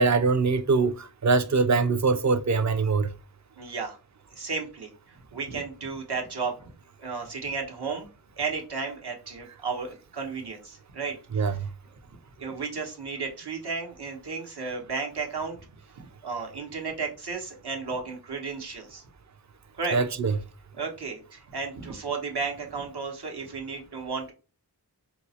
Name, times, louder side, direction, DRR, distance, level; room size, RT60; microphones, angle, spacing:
voice 1, 0.0-3.1 11.3-11.7 19.9-20.3, right 4 dB, 45° right, 0.5 m, -23 dB
voice 2, 3.6-4.0 4.3-6.7 7.0-8.1 8.4-11.5 12.4-15.6 16.0-19.0 19.8-20.0 20.7-24.3, right 4 dB, 75° right, 1.0 m, -33 dB
4.5 x 2.0 x 2.8 m
wide cardioid pair, 55°, 40 cm